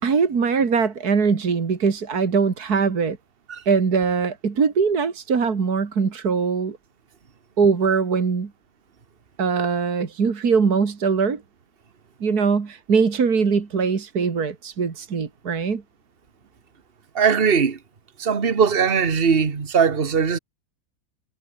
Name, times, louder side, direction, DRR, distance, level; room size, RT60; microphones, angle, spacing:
voice 1, 0.0-3.2 3.7-6.8 7.6-8.5 9.4-11.4 12.2-15.8, right 5 dB, 70° right, 2.7 m, -21 dB
voice 2, 17.2-17.8 18.2-20.4, right 6 dB, 35° right, 1.8 m, -20 dB
omnidirectional pair, 1.7 m